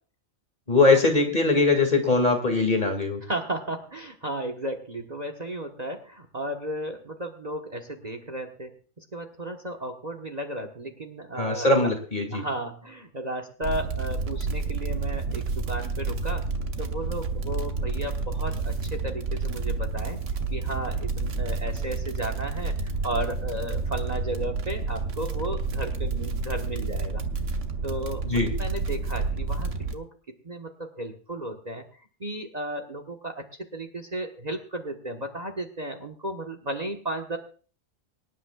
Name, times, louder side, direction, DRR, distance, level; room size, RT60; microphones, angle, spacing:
voice 1, 0.7-3.2 11.3-12.4 28.3-28.5, left 3 dB, 35° left, 4 dB, 2.4 m, -21 dB
voice 2, 3.2-11.7 12.3-16.4 16.8-20.2 20.5-27.2 27.8-30.1 30.4-31.8 32.2-33.5 33.7-37.4, right 1 dB, 30° right, 5 dB, 1.3 m, -34 dB
sound 1, 13.6-29.9, right 4 dB, 65° right, 1.4 m, -30 dB
24.0 x 11.0 x 2.4 m, 0.39 s
omnidirectional pair, 1.4 m